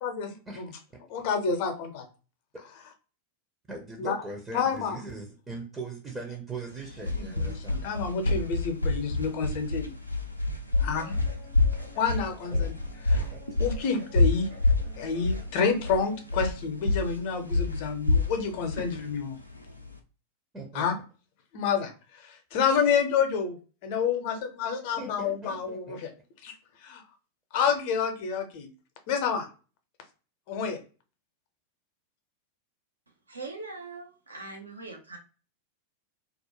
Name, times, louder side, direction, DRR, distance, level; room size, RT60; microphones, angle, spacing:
voice 1, 0.0-0.7 1.1-2.0 4.0-4.2 4.5-5.0 7.2-9.9 10.8-11.2 12.0-12.7 13.1-13.3 13.6-14.5 15.0-19.4 20.7-20.9 21.5-23.6 23.8-26.1 26.4-26.5 26.8-27.0 27.5-28.7 29.1-29.5 30.5-30.8, left 6 dB, 45° left, 6 dB, 0.6 m, -29 dB
voice 2, 3.7-7.9 12.5-12.7 13.3-13.4 20.5-20.8 25.0-26.0, right 3 dB, 15° right, 0 dB, 0.5 m, -40 dB
sound 1, 6.7-20.0, left 2 dB, 90° left, 0.3 m, -28 dB
Guitar, 10.7-16.2, left 1 dB, 60° right, 1.4 m, -50 dB
voice 3, 33.3-35.2, right 3 dB, 75° right, 3 dB, 0.5 m, -41 dB
2.4 x 2.1 x 2.8 m, 0.36 s
figure-of-eight pair, 90°, 0 cm